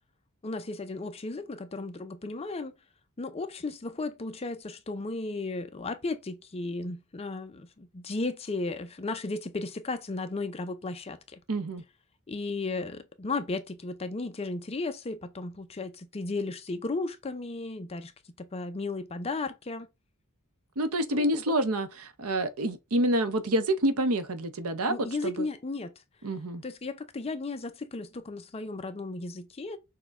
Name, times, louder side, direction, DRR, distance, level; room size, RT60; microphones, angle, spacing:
voice 1, 0.4-2.7 3.2-11.4 12.3-18.1 18.4-19.9 21.1-21.4 24.9-25.9 26.6-29.8, left 3 dB, 25° left, 0.5 m, -35 dB
voice 2, 11.5-11.8 20.8-25.5 26.2-26.6, right 1 dB, 75° right, 0.7 m, -28 dB
6.3 x 2.2 x 3.5 m
head